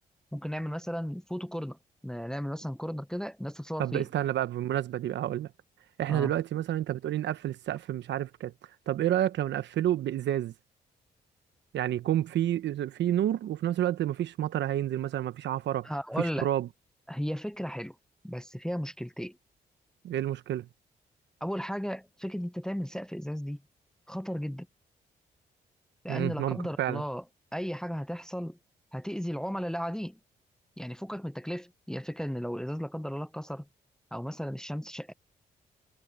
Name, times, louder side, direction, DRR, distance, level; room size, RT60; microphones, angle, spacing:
voice 1, 0.3-1.8 2.0-4.1 6.1-6.3 15.8-16.5 17.1-18.0 18.2-19.4 21.4-23.6 24.1-24.7 26.0-27.2 27.5-28.6 28.9-30.2 30.8-33.7 34.1-35.1, equal, 5° left, 0.7 m, -35 dB
voice 2, 3.8-5.5 6.0-8.5 8.9-10.5 11.7-15.9 16.2-16.7 20.0-20.7 26.1-27.0, right 12 dB, 75° right, 1.0 m, -29 dB
supercardioid pair, 50°, 19 cm